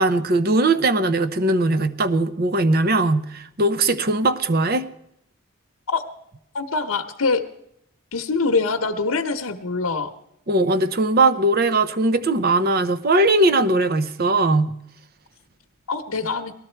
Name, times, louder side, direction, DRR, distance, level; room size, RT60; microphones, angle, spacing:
voice 1, 0.0-4.9 10.5-14.7, right 2 dB, 45° right, 13 dB, 0.6 m, -19 dB
voice 2, 6.5-7.4 8.1-10.1 15.9-16.5, left 4 dB, 80° left, 4 dB, 0.9 m, -24 dB
19.0 x 13.5 x 4.5 m, 0.78 s
head